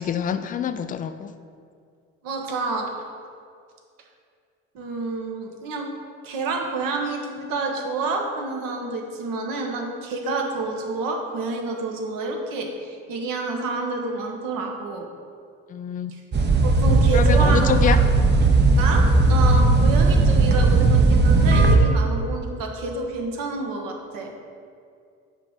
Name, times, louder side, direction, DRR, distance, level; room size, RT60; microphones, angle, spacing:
voice 1, 0.0-1.3 15.7-16.1 17.1-18.0, left 8 dB, 20° left, 10 dB, 0.3 m, -26 dB
voice 2, 2.2-2.9 4.7-5.9 6.2-15.1 16.1-16.2 16.6-18.1 18.8-24.4, right 3 dB, 55° right, 2 dB, 1.1 m, -28 dB
sound 1, 16.3-21.8, right 3 dB, 25° right, 0.8 m, -17 dB
8.7 x 3.0 x 5.0 m, 2.3 s
figure-of-eight pair, 50°, 39 cm